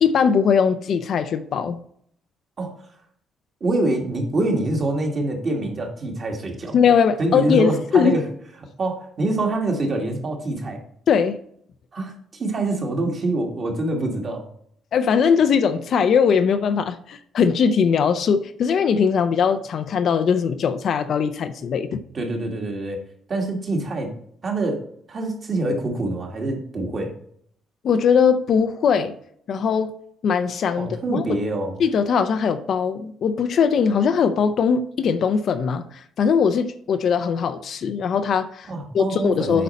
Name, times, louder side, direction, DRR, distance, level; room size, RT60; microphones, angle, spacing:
voice 1, 0.0-1.8 6.7-8.1 11.1-11.4 14.9-22.0 27.8-29.1 29.5-29.9 30.2-31.2 31.8-38.7 38.9-39.6, left 6 dB, 50° left, 9 dB, 0.5 m, -20 dB
voice 2, 3.6-6.8 7.2-8.3 8.8-10.8 11.9-14.4 22.1-23.0 23.3-24.1 24.4-24.8 25.1-27.1 30.8-31.8 38.7-39.6, right 2 dB, 30° right, 2 dB, 1.7 m, -25 dB
8.4 x 5.2 x 4.2 m, 0.66 s
cardioid pair, 150°, 0 cm